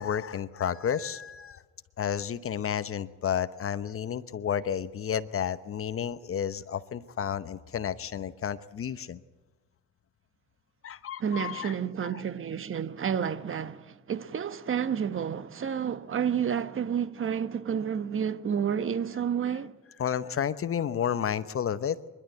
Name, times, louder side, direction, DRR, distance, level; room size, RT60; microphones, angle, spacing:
voice 1, 0.0-1.6 2.0-9.2 10.8-11.7 12.0-12.2 20.0-22.0, left 8 dB, 45° left, 0.9 m, -31 dB
voice 2, 11.2-19.7, right 8 dB, 40° right, 1.2 m, -30 dB
25.5 x 12.0 x 9.2 m
cardioid pair, 85°, 32 cm